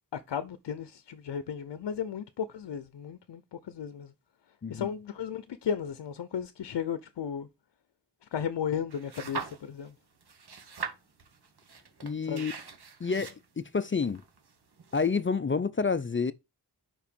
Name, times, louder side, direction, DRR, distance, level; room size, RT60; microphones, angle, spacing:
voice 1, 0.1-4.1 4.7-7.5 8.2-9.9 12.2-12.5, left 8 dB, 75° left, 0.7 m, -35 dB
sound 1, 8.9-9.9 10.2-15.3, right 5 dB, 65° right, 1.6 m, -41 dB
voice 2, 12.0-12.5 13.0-14.2 14.9-16.3, left 5 dB, 30° left, 0.5 m, -29 dB
5.4 x 4.9 x 5.2 m
wide cardioid pair, 65°, 42 cm